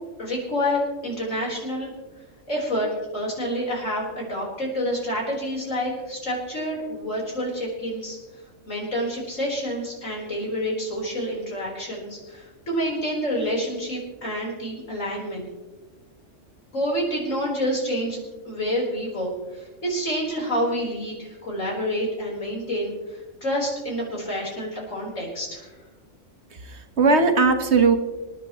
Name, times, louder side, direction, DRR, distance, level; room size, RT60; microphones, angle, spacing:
voice 1, 0.2-1.9 2.5-8.2 8.7-15.5 16.7-25.7, equal, 85° left, -2 dB, 4.6 m, -28 dB
voice 2, 26.5-28.0, right 4 dB, 60° right, 7 dB, 1.4 m, -19 dB
26.5 x 10.0 x 3.1 m, 1.2 s
omnidirectional pair, 1.3 m